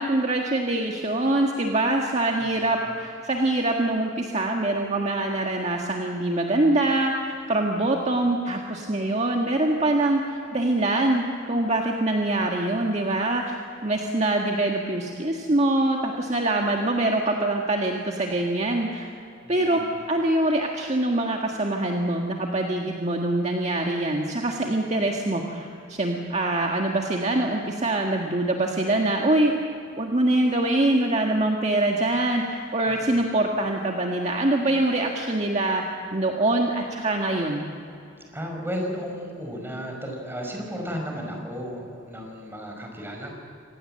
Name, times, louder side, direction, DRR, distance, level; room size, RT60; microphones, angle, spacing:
voice 1, 0.0-19.1 19.5-19.8 20.1-29.6 30.0-35.8 36.1-37.7, right 2 dB, 35° right, 1 dB, 1.7 m, -24 dB
voice 2, 2.4-2.9 19.4-19.9 32.9-33.2 38.3-43.3, equal, 10° right, 1 dB, 5.2 m, -34 dB
26.0 x 19.0 x 7.7 m, 2.6 s
head